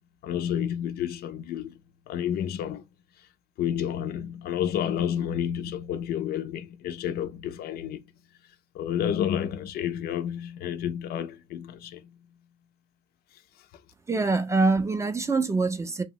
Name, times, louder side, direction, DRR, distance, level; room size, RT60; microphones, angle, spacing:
voice 1, 0.2-1.8 2.1-2.8 3.6-8.0 8.7-12.0, left 9 dB, 60° left, 0.4 m, -30 dB
voice 2, 14.1-16.0, right 3 dB, 15° right, 0.4 m, -24 dB
2.8 x 2.0 x 2.6 m
cardioid pair, 100°, 18 cm